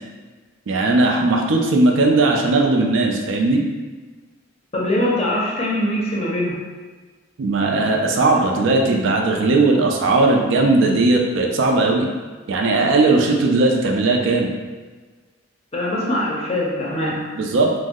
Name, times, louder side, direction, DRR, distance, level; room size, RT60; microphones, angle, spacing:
voice 1, 0.7-3.7 7.4-12.1 12.5-14.5 17.4-17.7, right 2 dB, 70° right, 1 dB, 0.4 m, -18 dB
voice 2, 4.7-6.5 15.7-17.2, left 1 dB, 30° left, -4 dB, 0.5 m, -22 dB
2.6 x 2.0 x 3.5 m, 1.3 s
head